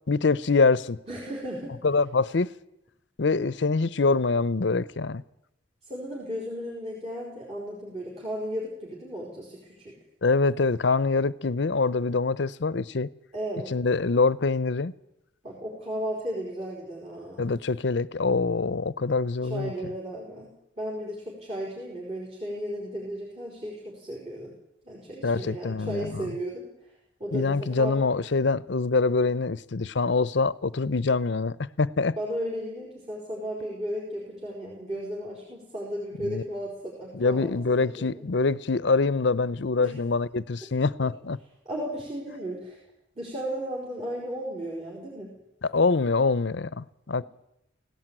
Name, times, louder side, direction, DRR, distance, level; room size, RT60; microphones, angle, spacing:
voice 1, 0.1-1.0 1.8-2.5 3.2-5.2 10.2-13.1 13.7-14.9 17.4-19.7 25.2-26.3 27.3-32.1 36.2-36.4 37.1-41.4 45.6-47.2, left 4 dB, 65° left, 0.6 m, -25 dB
voice 2, 1.1-1.8 5.8-10.0 13.3-13.8 15.4-17.5 19.4-24.5 24.8-26.9 27.2-28.0 32.2-38.2 39.8-40.0 41.6-42.8 43.1-45.3, equal, 30° right, 4.8 m, -35 dB
17.5 x 17.0 x 9.0 m
head